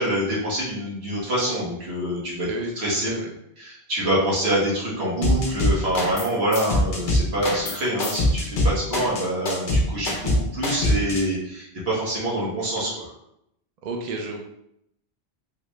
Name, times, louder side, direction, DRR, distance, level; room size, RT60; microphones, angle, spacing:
voice 1, 0.0-2.5 2.8-3.1 3.6-13.0, right 1 dB, 75° right, -6 dB, 1.5 m, -26 dB
sound 1, 5.2-6.3 6.5-11.2, left 1 dB, 55° left, 0.8 m, -22 dB
voice 2, 13.8-14.4, right 3 dB, 50° right, 1 dB, 0.5 m, -31 dB
3.6 x 2.4 x 3.1 m, 0.78 s
omnidirectional pair, 1.1 m